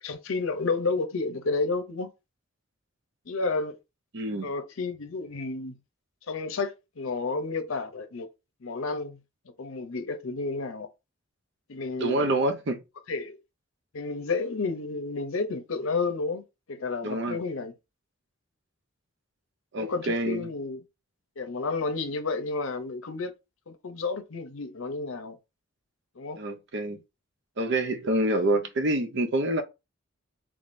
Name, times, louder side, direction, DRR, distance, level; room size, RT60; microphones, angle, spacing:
voice 1, 0.0-2.1 3.3-3.8 4.4-5.8 6.3-8.3 8.6-9.2 9.6-10.9 11.7-12.4 13.1-13.4 13.9-16.4 16.7-17.7 19.8-20.8 21.4-23.3 23.7-25.4 26.2-26.4, left 3 dB, 70° left, 0.7 m, -31 dB
voice 2, 4.1-4.5 12.0-12.8 17.0-17.4 19.7-20.5 26.4-27.0 27.6-29.6, right 1 dB, 55° right, 0.6 m, -27 dB
3.6 x 3.1 x 2.6 m
head